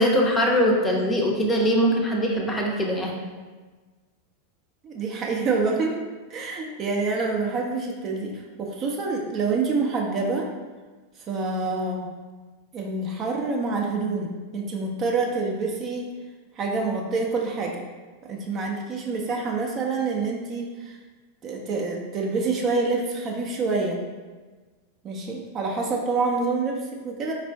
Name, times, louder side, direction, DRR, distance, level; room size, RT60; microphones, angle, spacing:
voice 1, 0.0-3.1, equal, 15° left, -1 dB, 0.6 m, -22 dB
voice 2, 4.8-6.0 6.3-10.5 11.3-12.1 12.7-16.1 16.6-17.8 18.2-21.0 21.4-24.0 25.0-27.3, right 3 dB, 30° right, 0 dB, 0.5 m, -27 dB
4.3 x 2.4 x 3.3 m, 1.3 s
figure-of-eight pair, 90°, 0 cm